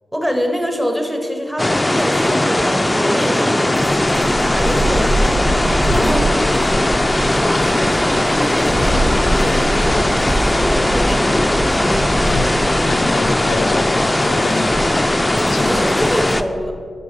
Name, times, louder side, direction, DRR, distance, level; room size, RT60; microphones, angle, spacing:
voice 1, 0.1-3.8 4.4-5.1 5.9-6.3 7.3-10.0 10.7-12.1 15.6-16.8, equal, 10° right, 3 dB, 1.2 m, -25 dB
sound 1, 1.6-16.4, left 1 dB, 15° left, 0.4 m, -18 dB
sound 2, 3.7-16.4, right 1 dB, 65° right, 1.9 m, -25 dB
voice 2, 12.2-12.6 12.8-15.0 15.5-15.9, left 4 dB, 80° left, 10 dB, 0.4 m, -26 dB
6.5 x 4.8 x 5.3 m, 2.1 s
cardioid pair, 45°, 0 cm